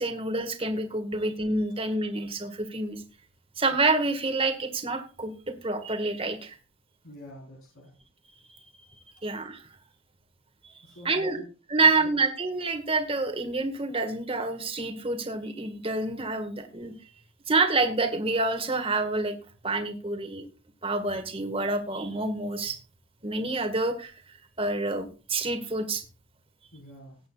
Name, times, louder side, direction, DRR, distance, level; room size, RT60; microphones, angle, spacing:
voice 1, 0.0-3.0 3.6-6.6 9.2-9.6 11.0-11.4 11.7-16.9 17.5-19.3 19.6-20.5 20.8-22.8 23.2-26.0, right 3 dB, 25° right, 7 dB, 1.6 m, -28 dB
voice 2, 7.0-7.9 10.8-11.5 11.8-12.2 23.6-23.7 26.7-27.2, left 1 dB, 85° left, -2 dB, 4.3 m, -46 dB
18.5 x 9.2 x 2.4 m, 0.32 s
head